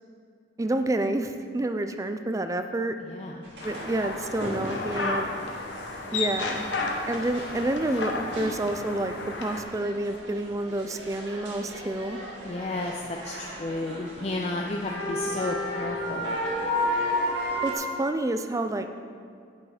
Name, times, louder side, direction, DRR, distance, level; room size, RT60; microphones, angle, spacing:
voice 1, 0.6-3.0 3.6-5.3 6.1-6.6 7.1-9.1 9.4-12.2 17.6-18.9, right 1 dB, 20° right, 8 dB, 0.4 m, -29 dB
voice 2, 3.0-3.4 12.4-16.4, left 2 dB, 35° left, 0 dB, 0.5 m, -32 dB
sound 1, 3.4-17.7, left 1 dB, 75° right, 2.3 m, -34 dB
sound 2, 3.6-9.6, left 3 dB, 85° left, 1.2 m, -33 dB
8.8 x 7.0 x 4.9 m, 2.3 s
head